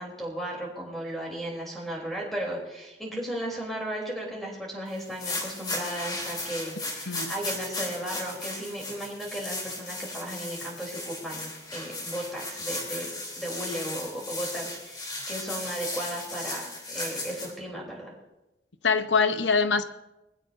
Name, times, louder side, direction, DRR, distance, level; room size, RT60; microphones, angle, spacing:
voice 1, 0.0-13.1 13.4-18.1, right 1 dB, ahead, -2 dB, 3.4 m, -35 dB
sound 1, 5.0-17.5, left 2 dB, 25° left, 3.3 m, -36 dB
voice 2, 18.8-19.8, left 5 dB, 80° left, 10 dB, 0.9 m, -23 dB
22.0 x 15.5 x 2.7 m, 0.96 s
head